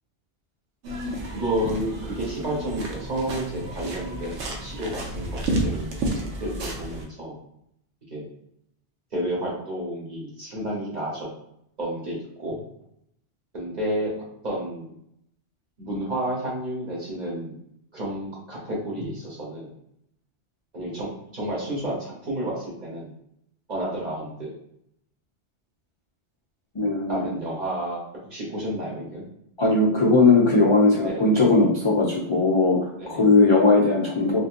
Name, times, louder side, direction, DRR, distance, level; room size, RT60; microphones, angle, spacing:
sound 1, 0.8-7.0, right 1 dB, 80° right, 1.0 m, -31 dB
voice 1, 1.3-7.4 8.1-8.3 9.1-11.3 11.8-12.6 13.5-14.1 14.4-14.9 15.8-17.5 17.9-19.7 20.7-23.1 23.7-24.5 27.1-28.0 28.3-29.2 31.0-31.2 33.0-33.2 34.1-34.2, right 1 dB, 40° right, -5 dB, 1.2 m, -31 dB
voice 2, 26.7-27.3 29.6-34.4, left 3 dB, 40° left, -4 dB, 0.5 m, -19 dB
3.6 x 2.7 x 2.5 m, 0.74 s
omnidirectional pair, 1.2 m